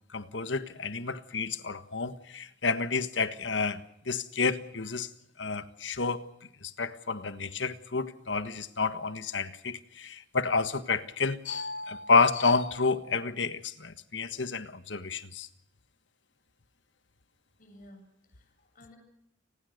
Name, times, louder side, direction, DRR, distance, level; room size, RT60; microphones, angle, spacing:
voice 1, 0.1-5.1 5.4-6.2 6.6-15.5, left 4 dB, 80° left, 12 dB, 1.5 m, -30 dB
voice 2, 17.6-19.0, left 1 dB, 50° left, 4 dB, 7.7 m, -55 dB
30.0 x 20.0 x 6.7 m, 0.78 s
head